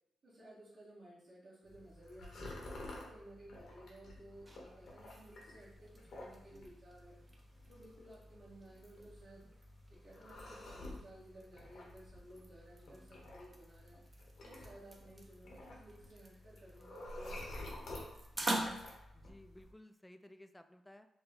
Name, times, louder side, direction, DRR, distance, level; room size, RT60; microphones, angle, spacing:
voice 1, 0.2-2.5 2.9-7.2 7.7-9.5 9.9-14.0 14.4-18.0 18.3-18.5, right 1 dB, 55° right, -9 dB, 1.5 m, -57 dB
sound 1, 1.6-19.7, left 1 dB, 70° left, 1.1 m, -51 dB
sound 2, 4.1-19.0, right 1 dB, 25° right, 0.7 m, -47 dB
voice 2, 19.1-21.1, left 1 dB, 10° left, 8 dB, 0.3 m, -58 dB
4.4 x 2.2 x 3.5 m, 0.87 s
cardioid pair, 75°, 0 cm